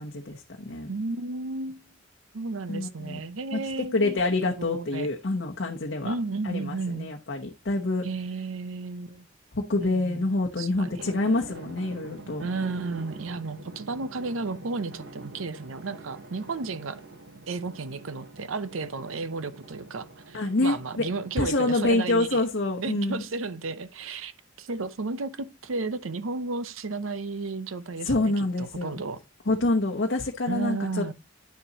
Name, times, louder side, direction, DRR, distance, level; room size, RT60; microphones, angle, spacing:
voice 1, 0.0-0.9 2.7-3.2 3.5-3.6 3.9-6.1 6.4-8.1 9.5-12.4 20.3-21.0 21.4-23.2 28.0-29.0 29.5-31.1, left 2 dB, 60° left, 0.9 m, -27 dB
voice 2, 0.9-1.9 2.3-5.1 6.0-7.1 8.0-9.3 9.8-10.3 10.6-11.1 12.4-17.0 17.5-22.4 22.8-24.3 24.6-29.2 30.5-31.1, right 3 dB, 90° right, 0.7 m, -33 dB
Drum, 11.0-22.0, right 2 dB, 55° right, 1.1 m, -46 dB
9.4 x 6.8 x 2.8 m
head